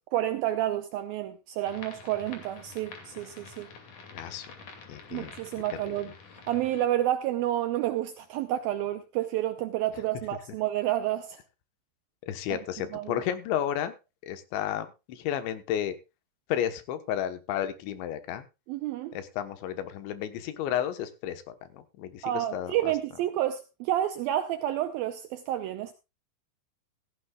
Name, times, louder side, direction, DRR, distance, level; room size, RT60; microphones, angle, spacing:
voice 1, 0.0-3.7 5.1-6.1 6.5-11.4 12.5-12.6 12.9-13.2 18.7-19.2 22.2-25.9, right 13 dB, 80° right, 2.1 m, -30 dB
sound 1, 1.6-6.9, left 4 dB, 50° left, 3.5 m, -48 dB
voice 2, 4.1-4.5 4.9-5.3 5.7-6.0 12.2-13.9 14.2-16.0 16.5-18.5 19.1-22.9, left 10 dB, 85° left, 3.6 m, -32 dB
16.0 x 15.0 x 2.4 m
omnidirectional pair, 5.1 m